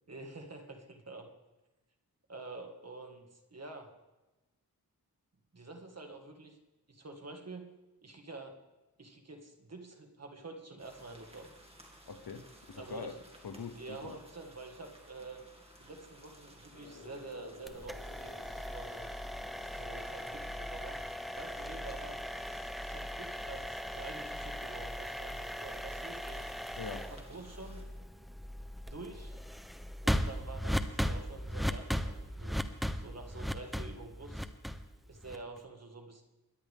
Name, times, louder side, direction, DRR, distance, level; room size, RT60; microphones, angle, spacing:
voice 1, 0.1-1.3 2.3-3.9 5.5-6.6 6.9-7.7 8.0-8.6 9.0-11.5 12.8-13.1 13.8-15.4 15.8-19.1 19.7-21.0 21.3-22.2 22.8-26.6 27.1-27.8 28.9-29.4 30.0-32.6 33.0-34.5 35.1-36.2, right 3 dB, 45° right, 4 dB, 2.0 m, -48 dB
sound 1, 10.8-27.8, right 1 dB, 15° right, 2.5 m, -57 dB
voice 2, 12.1-13.1 13.4-14.1 26.8-27.1, left 5 dB, 80° left, 8 dB, 1.2 m, -43 dB
sound 2, 16.7-22.9, left 3 dB, 55° left, 2.1 m, -58 dB
sound 3, 17.7-35.6, equal, ahead, 0.8 m, -38 dB
23.0 x 10.5 x 3.6 m, 1.1 s
wide cardioid pair, 80°, 37 cm